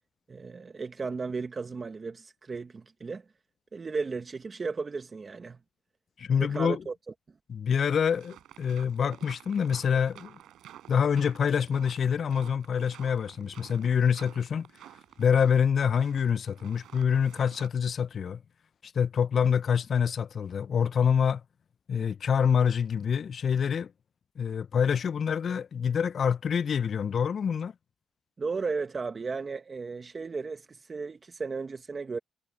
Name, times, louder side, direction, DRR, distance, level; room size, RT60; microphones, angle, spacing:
voice 1, 0.3-3.3 3.7-5.6 6.4-6.9 28.4-32.2, right 4 dB, 35° right, 1.1 m, -35 dB
voice 2, 6.2-6.8 7.5-10.4 10.9-14.7 15.2-18.4 18.9-21.4 21.9-23.9 24.4-27.7, left 7 dB, 50° left, 0.3 m, -26 dB
sound 1, 7.9-17.7, right 12 dB, 80° right, 4.2 m, -52 dB
cardioid pair, 90°, 0 cm